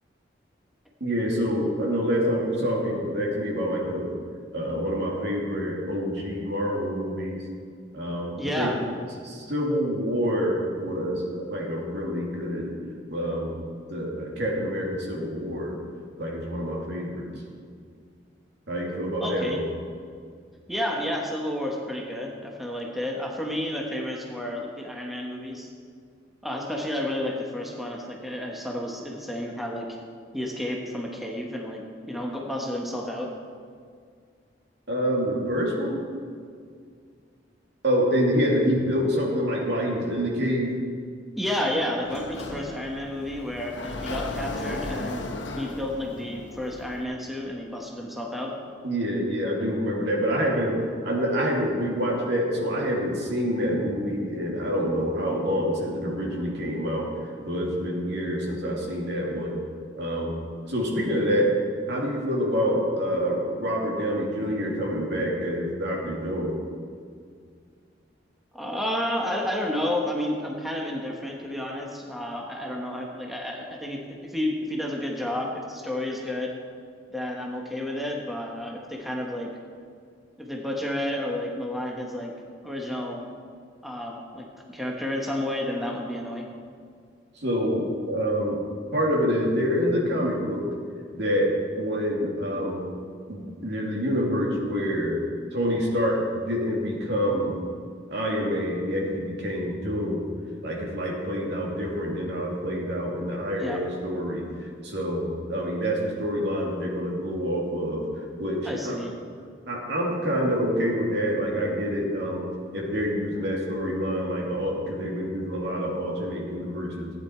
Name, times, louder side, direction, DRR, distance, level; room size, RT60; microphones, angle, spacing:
voice 1, 1.0-4.1 4.5-7.4 7.9-8.7 9.2-12.7 13.1-13.5 13.9-15.7 16.2-17.3 18.7-19.7 34.9-36.0 37.8-40.7 48.8-59.6 59.9-60.4 60.7-61.5 61.9-66.5 87.3-88.6 88.9-90.7 91.1-92.8 93.3-95.2 95.5-97.6 98.1-100.2 100.6-108.0 108.4-109.0 109.7-112.4 112.7-117.1, equal, 65° right, -2 dB, 2.6 m, -27 dB
voice 2, 8.4-8.8 19.2-19.6 20.7-25.7 26.4-29.9 30.3-33.3 41.4-45.2 45.6-48.5 68.5-76.5 77.1-79.5 80.4-82.3 82.6-83.2 83.8-86.5 103.6-103.8 108.6-109.2, left 1 dB, ahead, -1 dB, 1.2 m, -31 dB
Sliding door, 42.0-47.0, left 2 dB, 70° left, 1.2 m, -36 dB
15.5 x 9.4 x 4.5 m, 2.1 s
head